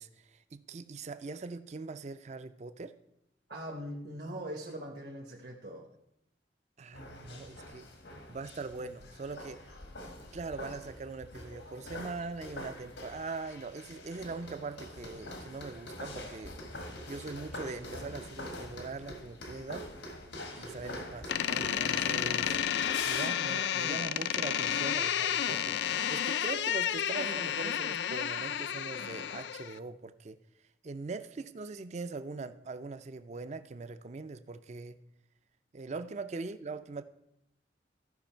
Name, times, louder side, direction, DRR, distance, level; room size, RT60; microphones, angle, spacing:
voice 1, 0.0-2.9 6.8-7.9 8.3-9.7 10.3-16.6 17.1-19.9 20.6-22.6 23.1-30.4 30.8-35.0 35.7-37.0, right 3 dB, 40° right, 12 dB, 0.4 m, -41 dB
voice 2, 3.5-5.9, right 1 dB, 60° right, 0 dB, 1.1 m, -41 dB
sound 1, 6.9-23.3, left 1 dB, 90° left, 1.4 m, -45 dB
Door, 21.3-29.8, left 9 dB, 70° left, 0.4 m, -31 dB
14.5 x 5.3 x 4.4 m, 0.83 s
head